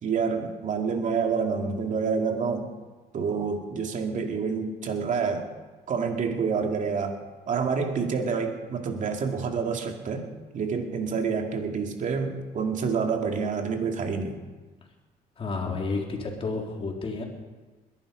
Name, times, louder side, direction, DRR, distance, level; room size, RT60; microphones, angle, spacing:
voice 1, 0.0-2.7 3.1-5.5 5.9-14.4, right 5 dB, 50° right, 3 dB, 2.6 m, -28 dB
voice 2, 15.4-17.2, left 3 dB, 35° left, 1 dB, 3.5 m, -31 dB
21.5 x 11.5 x 5.2 m, 1.3 s
cardioid pair, 110°, 17 cm